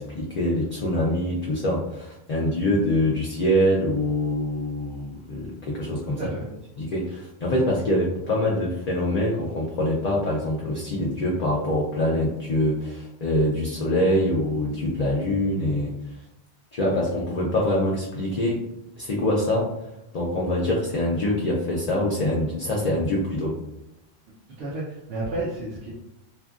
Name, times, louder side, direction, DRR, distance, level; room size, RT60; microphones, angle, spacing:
voice 1, 0.0-6.2 6.8-15.9 16.7-18.6 19.0-19.7 20.1-23.6, left 1 dB, 55° left, -3 dB, 0.5 m, -24 dB
voice 2, 6.2-6.5 24.5-25.9, right 2 dB, 75° right, -5 dB, 0.8 m, -31 dB
2.8 x 2.5 x 2.3 m, 0.86 s
omnidirectional pair, 1.1 m